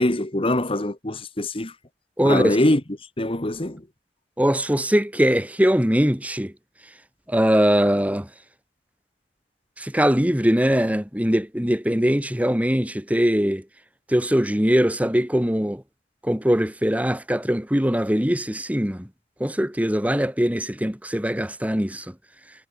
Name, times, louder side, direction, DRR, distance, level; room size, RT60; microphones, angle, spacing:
voice 1, 0.0-1.7 2.2-2.8 3.2-3.8, left 1 dB, 30° left, 1.5 m, -23 dB
voice 2, 2.2-2.6 4.4-6.5 7.3-8.3 9.8-13.6 14.1-15.8 16.2-19.1 19.4-22.0, equal, 10° right, 1.7 m, -21 dB
head